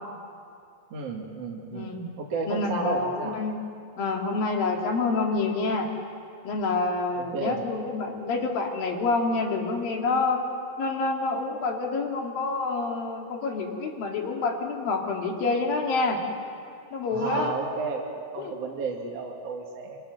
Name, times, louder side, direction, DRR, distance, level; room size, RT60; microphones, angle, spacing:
voice 1, 0.9-1.9 2.2-3.4 7.2-7.6 17.1-20.0, right 4 dB, 45° right, -1 dB, 2.9 m, -32 dB
voice 2, 1.7-2.1 2.5-3.5 4.0-5.9 6.4-10.4 10.8-16.2 16.9-17.5 18.4-18.5, left 3 dB, 65° left, 1 dB, 4.2 m, -27 dB
28.0 x 25.0 x 6.6 m, 2.4 s
omnidirectional pair, 4.5 m